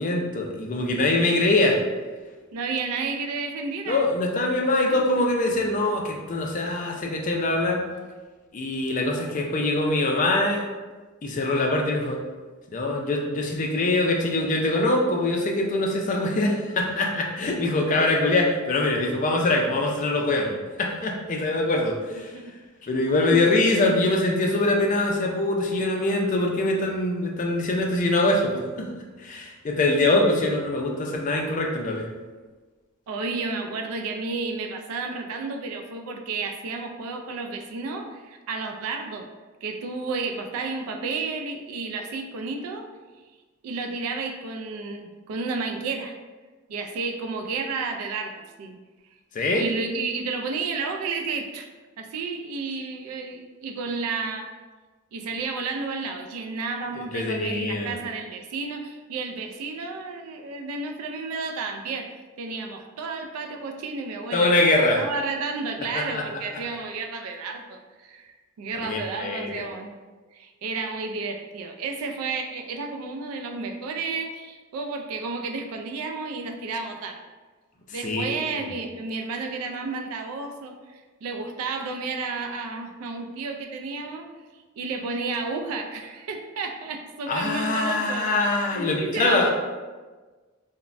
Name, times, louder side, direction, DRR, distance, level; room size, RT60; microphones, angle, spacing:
voice 1, 0.0-1.8 3.9-7.8 8.5-10.6 11.2-12.2 12.7-22.3 22.8-28.9 29.2-32.1 49.3-49.7 57.1-57.9 64.3-65.0 65.9-66.2 68.8-69.5 78.0-78.3 87.3-89.5, left 2 dB, 35° left, 0 dB, 0.3 m, -23 dB
voice 2, 2.5-4.1 4.9-5.0 22.1-22.5 23.1-23.4 33.1-39.3 39.6-42.9 43.6-46.2 46.7-48.8 49.6-51.7 52.0-54.5 55.1-62.1 62.4-69.9 70.3-77.2 77.9-84.3 84.8-88.3 88.7-89.5, right 4 dB, 85° right, 5 dB, 0.3 m, -32 dB
3.1 x 2.1 x 2.5 m, 1.3 s
head